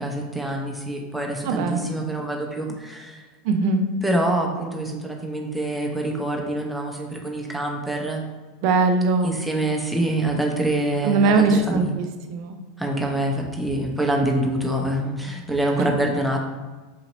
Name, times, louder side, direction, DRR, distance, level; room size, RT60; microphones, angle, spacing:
voice 1, 0.0-3.2 4.0-8.2 9.2-11.9 12.8-16.4, right 1 dB, 5° right, 0 dB, 0.7 m, -25 dB
voice 2, 1.4-1.8 3.4-3.8 8.6-9.4 11.0-12.6, right 3 dB, 60° right, 6 dB, 0.5 m, -20 dB
4.1 x 2.8 x 3.0 m, 1.3 s
hypercardioid pair, 95°, 0 cm